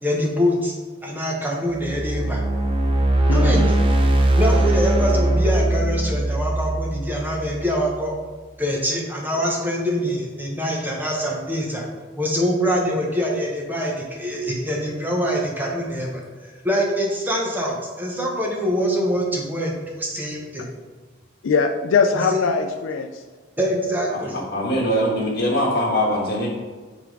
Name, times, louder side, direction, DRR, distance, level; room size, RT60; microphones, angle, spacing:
voice 1, 0.0-0.7 1.0-2.4 3.3-3.7 4.4-8.1 8.6-11.9 12.2-20.6 22.1-22.4 23.6-24.4, equal, 10° right, -2 dB, 0.9 m, -24 dB
sound 1, 1.7-7.9, right 1 dB, 25° right, 0.5 m, -20 dB
voice 2, 3.3-3.7 21.4-23.2 24.8-25.0, left 5 dB, 85° left, 5 dB, 0.4 m, -21 dB
voice 3, 24.5-26.5, equal, 55° left, -3 dB, 1.7 m, -22 dB
5.9 x 3.5 x 4.6 m, 1.4 s
head